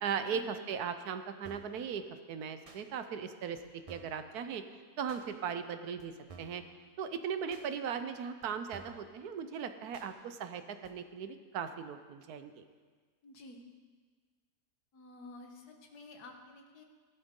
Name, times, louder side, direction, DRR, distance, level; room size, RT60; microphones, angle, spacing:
voice 1, 0.0-2.0 2.3-3.6 3.9-4.6 5.0-6.1 6.4-6.6 7.0-12.6, right 7 dB, 75° right, 9 dB, 1.2 m, -38 dB
sound 1, 1.4-1.8 2.6-2.8 3.6-3.7 3.9-4.2 5.1-5.2 6.0-6.1 6.3-6.6 7.5-7.7 8.4-8.5 8.7-9.1 9.9-10.1 10.8-10.9, right 4 dB, 30° right, 0.8 m, -52 dB
voice 2, 13.2-13.7 14.9-16.8, left 2 dB, 75° left, 3 dB, 1.8 m, -51 dB
16.5 x 11.5 x 3.7 m, 1.5 s
omnidirectional pair, 1.7 m